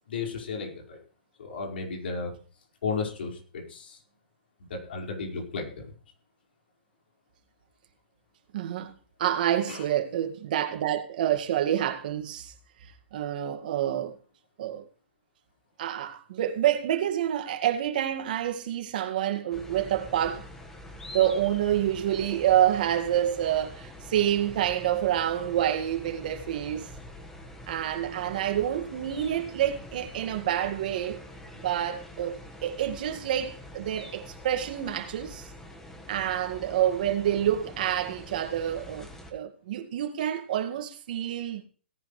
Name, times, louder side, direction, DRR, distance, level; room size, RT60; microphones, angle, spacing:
voice 1, 0.1-1.0 1.4-2.3 2.8-4.0 4.6-5.9 9.7-9.9, left 4 dB, 65° left, 5.1 m, -34 dB
voice 2, 8.5-8.9 9.2-12.5 13.1-14.1 14.6-14.8 15.8-20.5 21.1-26.9 27.7-31.2 31.6-35.5 36.1-41.6, right 11 dB, 50° right, 2.0 m, -28 dB
sound 1, 19.5-39.3, left 1 dB, 5° left, 1.6 m, -45 dB
17.5 x 10.5 x 3.3 m
hypercardioid pair, 160°, 6 cm